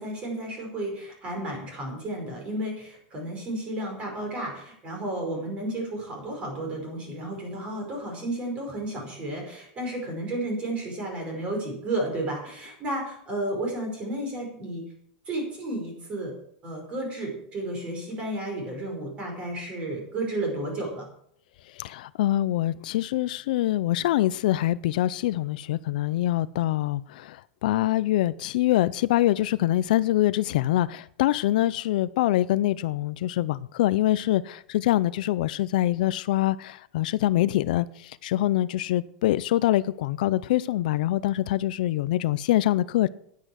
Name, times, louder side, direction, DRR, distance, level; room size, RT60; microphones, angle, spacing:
voice 1, 0.0-14.8 15.3-16.3 16.6-21.1, right 1 dB, 25° right, 5.2 m, -32 dB
voice 2, 21.7-43.1, left 14 dB, 65° left, 0.5 m, -24 dB
10.5 x 9.9 x 6.3 m
supercardioid pair, 165°, 5 cm